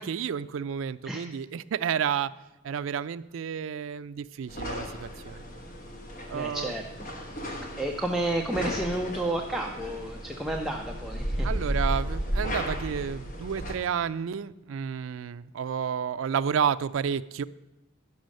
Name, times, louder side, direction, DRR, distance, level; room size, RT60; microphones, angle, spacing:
voice 1, 0.0-2.3 2.6-5.4 6.3-6.7 11.4-17.4, right 7 dB, 70° right, 13 dB, 0.4 m, -31 dB
sound 1, 4.5-13.7, equal, 45° left, 1.2 m, -34 dB
voice 2, 6.3-6.8 7.8-11.5, right 1 dB, ahead, 0 dB, 0.6 m, -31 dB
10.5 x 6.1 x 6.4 m, 0.97 s
head